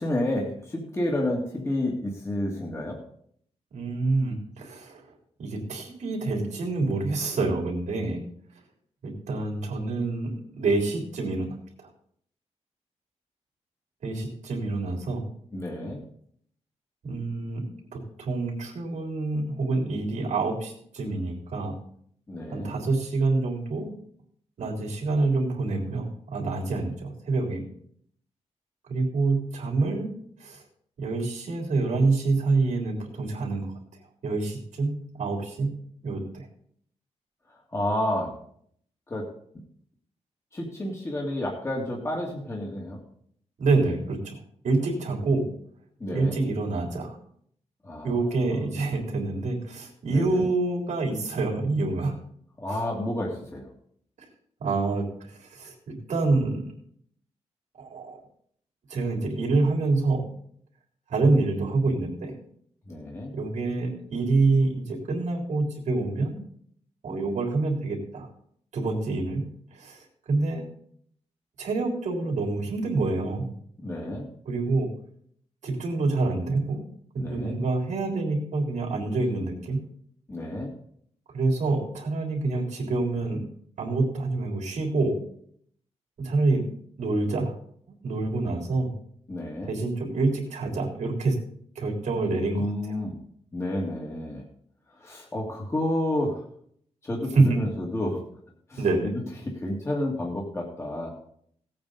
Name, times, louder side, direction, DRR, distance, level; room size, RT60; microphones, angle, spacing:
voice 1, 0.0-3.0 15.5-16.0 22.3-22.8 37.7-38.3 39.1-39.3 40.5-43.0 46.0-46.4 47.8-48.6 50.1-50.5 52.6-53.7 62.9-63.3 73.8-74.3 77.2-77.6 80.3-80.7 89.3-89.7 92.5-93.2 93.5-94.4 95.0-96.4 97.0-98.2 98.7-99.1 99.4-101.1, left 1 dB, 25° left, -2 dB, 2.2 m, -30 dB
voice 2, 3.7-5.0 5.4-8.2 9.0-11.9 14.0-15.3 17.0-17.7 17.9-21.8 22.5-23.9 24.6-27.6 28.9-30.1 30.4-30.6 31.0-33.7 34.2-36.5 43.6-44.4 44.6-45.5 46.1-47.2 48.0-52.2 52.7-52.8 54.6-56.7 57.8-58.2 58.9-60.3 61.1-62.3 63.3-66.4 67.0-68.3 68.7-70.7 71.6-73.5 74.5-74.9 75.6-76.8 77.1-79.8 81.3-83.4 83.8-85.2 86.2-86.7 87.0-87.5 87.9-88.9 89.7-91.4 91.8-92.6 97.3-97.6 98.8-99.1, right 3 dB, 85° right, 0 dB, 3.6 m, -27 dB
17.0 x 8.7 x 4.1 m, 0.65 s
wide cardioid pair, 140°, 12 cm